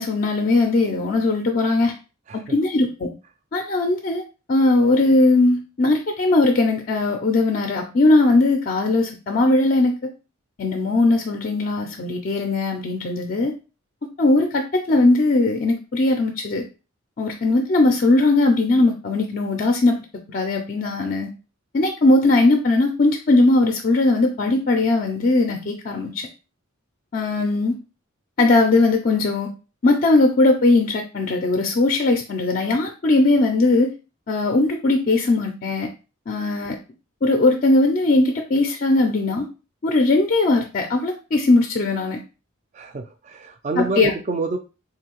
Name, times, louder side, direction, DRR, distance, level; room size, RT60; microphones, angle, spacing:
voice 1, 0.0-1.9 2.3-3.1 3.5-10.1 10.6-13.5 14.2-16.6 17.2-20.0 20.3-21.3 21.7-26.3 27.1-27.8 28.4-29.5 29.8-33.9 34.3-35.9 36.3-36.8 37.2-39.5 39.8-42.2 43.8-44.1, left 2 dB, 40° left, 3 dB, 0.4 m, -19 dB
voice 2, 42.7-44.6, right 2 dB, 35° right, 7 dB, 0.3 m, -27 dB
3.7 x 2.6 x 2.9 m, 0.32 s
head